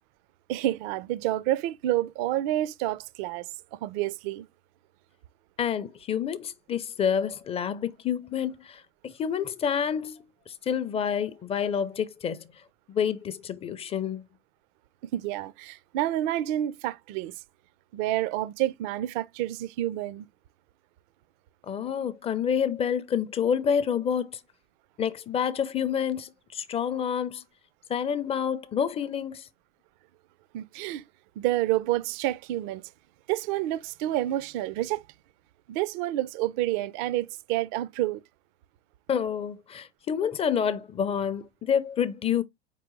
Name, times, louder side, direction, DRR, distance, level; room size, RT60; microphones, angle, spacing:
voice 1, 0.5-4.4 15.1-17.4 17.9-20.3 30.5-31.0 31.4-32.8 33.3-35.0 35.7-38.2, right 14 dB, 45° right, 0.4 m, -29 dB
voice 2, 5.6-10.3 10.6-12.5 12.9-14.2 21.7-24.4 25.0-27.4 27.9-29.5 39.1-42.4, left 8 dB, 20° left, 0.4 m, -28 dB
4.5 x 3.7 x 3.0 m
hypercardioid pair, 90°, 34 cm